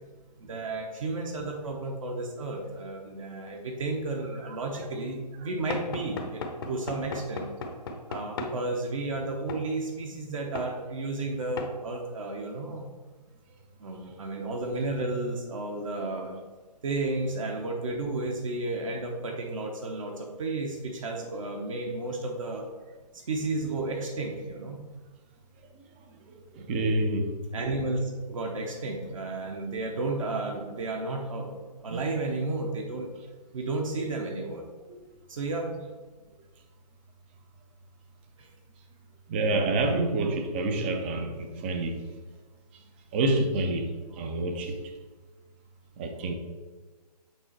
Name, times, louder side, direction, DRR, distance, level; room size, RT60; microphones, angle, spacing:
voice 1, 0.4-7.5 8.1-12.9 13.8-16.4 16.8-22.7 23.1-24.8 26.2-26.4 27.5-31.5 31.8-33.1 33.5-34.6 35.3-35.7 38.4-38.5 43.1-43.5, right 2 dB, 50° right, 1 dB, 1.1 m, -32 dB
Knock / Wood, 5.7-8.6 9.5-9.7 10.6-10.7 11.6-11.8, left 3 dB, 35° left, 0.8 m, -36 dB
voice 2, 26.5-27.3 31.9-32.0 39.3-42.0 43.1-44.9 46.0-46.3, right 2 dB, 15° right, 5 dB, 0.5 m, -28 dB
8.0 x 3.8 x 4.5 m, 1.3 s
figure-of-eight pair, 145°, 21 cm